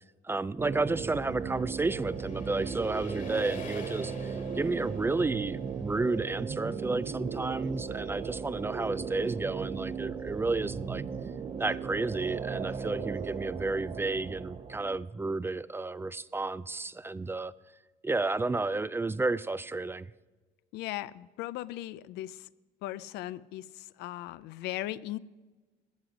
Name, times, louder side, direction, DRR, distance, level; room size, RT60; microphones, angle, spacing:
voice 1, 0.2-11.0 11.6-17.5 18.0-20.1, right 3 dB, 15° right, 18 dB, 0.3 m, -32 dB
sound 1, 0.6-15.0, right 6 dB, 35° right, 0.8 m, -36 dB
Motorcycle, 0.9-13.5, left 6 dB, 55° left, 2.0 m, -52 dB
voice 2, 20.7-22.4 22.8-25.2, left 15 dB, 85° left, 17 dB, 0.5 m, -38 dB
15.5 x 9.9 x 4.9 m, 1.3 s
cardioid pair, 110°, 17 cm